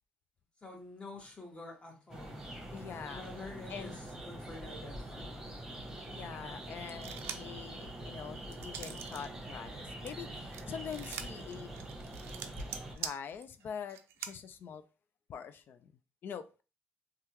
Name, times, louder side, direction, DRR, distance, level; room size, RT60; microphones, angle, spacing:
voice 1, 0.6-2.5 3.1-5.5, left 2 dB, 25° left, 1.3 m, -48 dB
sound 1, 2.1-12.9, right 1 dB, 10° right, 1.1 m, -44 dB
voice 2, 2.7-3.3 3.7-4.0 6.1-11.7 13.0-14.8 15.3-15.9 16.2-16.6, left 7 dB, 60° left, 0.4 m, -44 dB
sound 2, 6.9-7.6 8.0-9.3 9.6-14.3, right 9 dB, 85° right, 0.4 m, -44 dB
3.4 x 2.3 x 2.9 m
cardioid pair, 90°, 4 cm